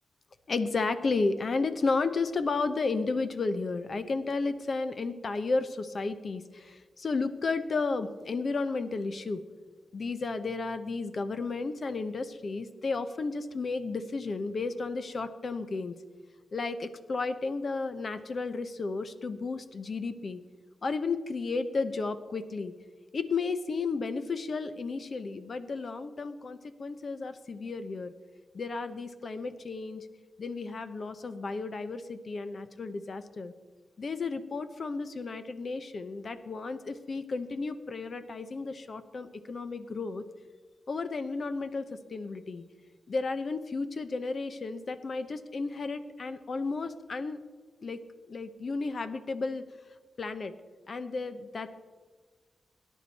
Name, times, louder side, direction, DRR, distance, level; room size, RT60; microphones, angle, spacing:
voice 1, 0.5-9.4 9.9-16.0 16.5-20.4 20.8-22.7 23.1-28.1 28.5-30.1 30.4-33.5 34.0-40.2 40.9-42.6 43.1-47.4 47.8-48.0 48.3-49.6 50.2-50.5 50.9-51.7, left 3 dB, 50° left, 11 dB, 0.8 m, -33 dB
18.0 x 10.0 x 4.2 m, 1.4 s
cardioid pair, 85°, 0 cm